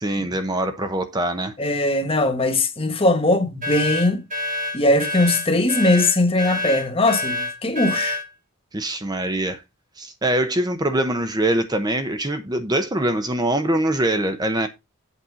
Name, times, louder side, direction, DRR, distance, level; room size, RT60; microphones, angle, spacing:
voice 1, 0.0-1.5 8.7-9.6 10.0-14.7, right 1 dB, 20° right, 0.8 m, -23 dB
voice 2, 1.6-4.2 4.7-8.2, left 2 dB, 25° left, 1.4 m, -20 dB
sound 1, 3.6-8.3, left 2 dB, 40° right, 2.6 m, -27 dB
8.2 x 4.3 x 6.1 m
head